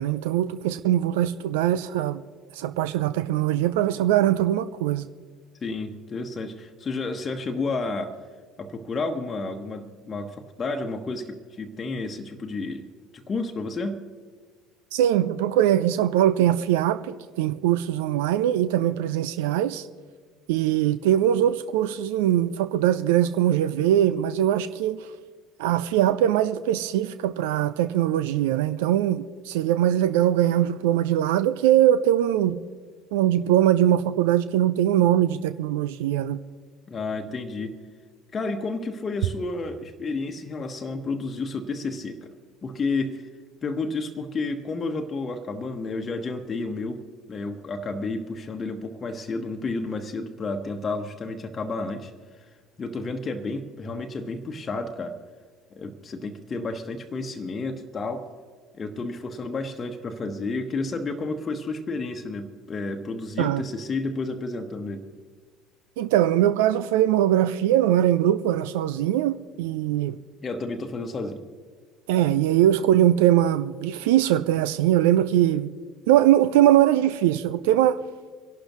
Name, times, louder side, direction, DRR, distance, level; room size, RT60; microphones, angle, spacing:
voice 1, 0.0-2.2 2.6-5.0 14.9-19.9 20.5-25.1 25.6-32.6 33.1-36.4 63.4-63.6 66.0-70.2 72.1-75.7 76.1-78.0, right 12 dB, 65° right, 0.4 m, -21 dB
voice 2, 5.6-8.1 8.6-12.8 13.1-14.0 36.9-37.7 38.3-42.2 42.6-43.2 43.6-52.1 52.8-55.2 55.7-58.3 58.8-65.0 70.4-71.4, left 3 dB, 30° left, 1.1 m, -31 dB
25.5 x 11.5 x 3.1 m
figure-of-eight pair, 60°, 0 cm